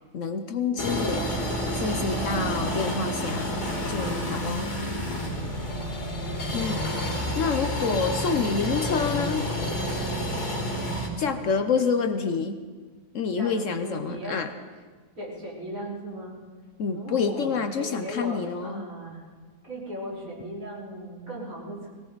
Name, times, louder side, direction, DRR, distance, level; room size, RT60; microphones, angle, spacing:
voice 1, 0.1-1.4 1.7-3.5 3.9-4.7 6.5-6.9 7.4-9.5 11.2-12.6 13.1-14.5 16.8-18.9, left 5 dB, 60° left, 8 dB, 1.0 m, -28 dB
sound 1, 0.8-11.1, equal, 90° left, 3.0 m, -29 dB
voice 2, 10.9-11.5 13.4-14.4 15.2-16.4 16.9-19.2 19.6-21.9, right 1 dB, 60° right, -6 dB, 5.0 m, -38 dB
20.5 x 17.5 x 4.0 m, 1.5 s
omnidirectional pair, 1.6 m